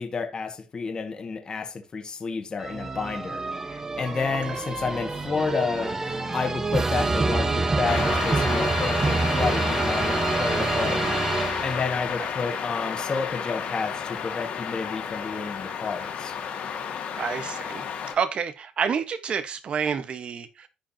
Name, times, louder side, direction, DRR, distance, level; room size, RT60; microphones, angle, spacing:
voice 1, 0.0-3.4 3.7-16.4, left 4 dB, 35° left, 1.8 m, -30 dB
sound 1, 2.6-12.1, right 3 dB, 25° right, 1.2 m, -27 dB
sound 2, 7.9-18.1, left 7 dB, 75° left, 2.6 m, -31 dB
voice 2, 17.2-17.9 18.2-20.7, right 6 dB, 50° right, 1.3 m, -29 dB
14.0 x 5.1 x 2.9 m
cardioid pair, 95°, 2 cm